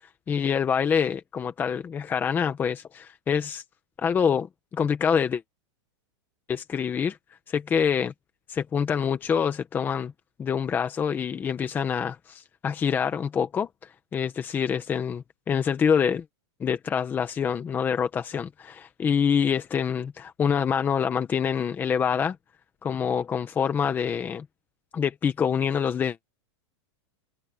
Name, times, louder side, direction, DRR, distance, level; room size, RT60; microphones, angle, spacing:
voice 1, 0.3-3.6 4.0-5.4 6.5-7.2 7.5-8.1 8.5-10.1 10.4-16.2 16.6-22.4 22.8-24.5 24.9-26.2, left 7 dB, 15° left, 0.9 m, -26 dB
supercardioid pair, 170°, 15 cm